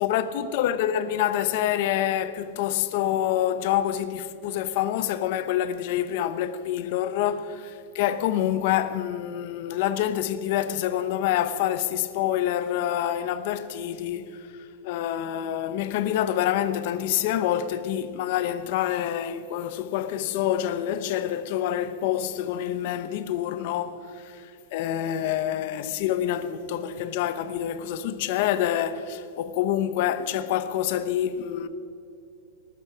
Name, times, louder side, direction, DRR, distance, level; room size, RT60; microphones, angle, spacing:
voice 1, 0.0-14.4 14.8-24.4 24.7-31.7, left 11 dB, 45° left, 0.9 m, -27 dB
19.5 x 12.5 x 5.0 m
supercardioid pair, 170°, 0 cm